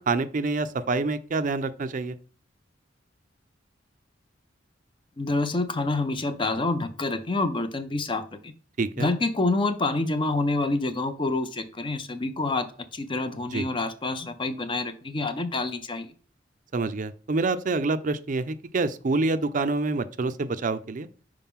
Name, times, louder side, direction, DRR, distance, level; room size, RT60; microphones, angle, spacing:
voice 1, 0.1-2.1 8.8-9.1 13.5-13.7 16.7-21.1, right 3 dB, 45° right, 0.5 m, -27 dB
voice 2, 5.2-8.5 9.0-16.1, left 2 dB, 25° left, 0.5 m, -27 dB
5.7 x 5.0 x 3.6 m
head